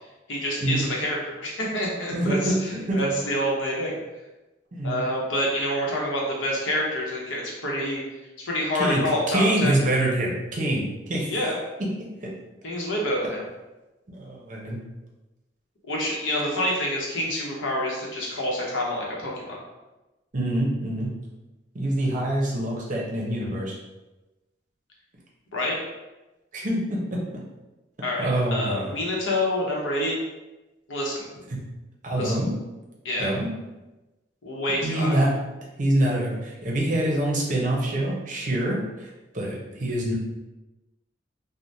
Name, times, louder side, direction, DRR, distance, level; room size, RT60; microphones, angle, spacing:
voice 1, 0.3-3.9 4.8-8.0 8.4-9.7 11.3-11.6 12.6-13.5 15.9-19.5 25.5-25.8 28.0-30.1 30.9-31.2 32.1-32.4 33.0-33.4 34.4-35.2, left 1 dB, 85° left, -3 dB, 0.8 m, -27 dB
voice 2, 2.1-2.6 2.9-3.0 4.7-5.0 8.8-11.3 12.2-12.3 14.1-14.8 20.3-21.1 21.7-23.7 26.5-27.2 28.2-28.9 31.5-31.6 32.0-32.5 33.2-33.5 34.8-35.3 35.8-39.1 39.3-40.1, right 1 dB, 40° right, -3 dB, 0.6 m, -25 dB
3.3 x 2.1 x 2.6 m, 1.1 s
head